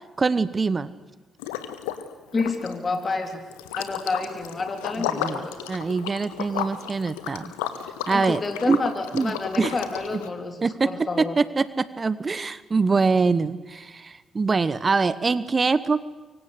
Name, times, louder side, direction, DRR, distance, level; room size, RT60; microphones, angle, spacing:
voice 1, 0.2-0.9 5.1-5.4 5.7-7.5 8.1-8.4 8.7-8.8 9.1-9.7 10.6-10.9 11.2-16.0, right 4 dB, 35° right, 16 dB, 1.1 m, -24 dB
Liquid, 1.4-2.1 2.3-10.3, left 11 dB, 80° left, 1.7 m, -33 dB
voice 2, 2.3-3.4 3.7-5.5 8.1-11.4, left 3 dB, 35° left, 5 dB, 3.4 m, -29 dB
24.5 x 24.5 x 8.3 m, 1.2 s
hypercardioid pair, 45°, 0 cm